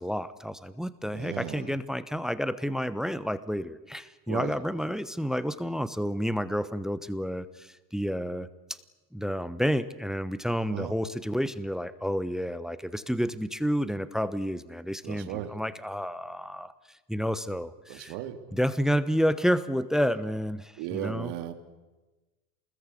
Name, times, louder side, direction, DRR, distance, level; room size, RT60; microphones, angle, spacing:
voice 1, 0.0-8.5 9.1-16.7 17.1-18.1 18.5-21.3, equal, ahead, 14 dB, 1.0 m, -30 dB
voice 2, 1.1-1.8 4.3-4.6 10.7-11.0 15.0-15.5 17.9-18.6 20.8-21.5, right 12 dB, 55° right, 8 dB, 3.4 m, -36 dB
28.5 x 21.0 x 8.4 m, 1.1 s
supercardioid pair, 130°, 50 cm